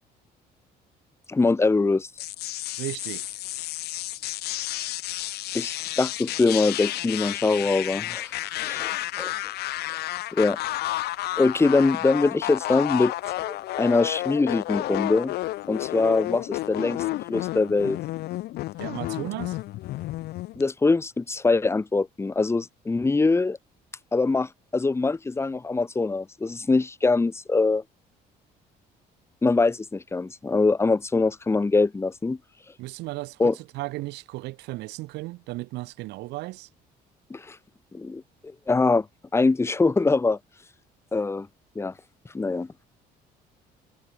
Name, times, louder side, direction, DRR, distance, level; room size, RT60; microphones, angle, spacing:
voice 1, 1.3-2.1 5.5-9.3 10.3-10.6 11.4-13.1 13.5-15.3 15.7-17.0 17.3-18.0 20.5-23.6 24.1-27.8 29.4-32.4 33.4-33.5 37.3-37.6 37.9-39.1 39.3-40.4 41.1-41.5 41.7-41.9 42.3-42.7, left 3 dB, 15° left, 1.1 m, -23 dB
sound 1, 2.2-20.6, left 16 dB, 70° left, 0.8 m, -31 dB
voice 2, 2.8-3.4 18.8-19.6 32.8-36.7, right 20 dB, 90° right, 6.6 m, -35 dB
cardioid pair, 110°, 17 cm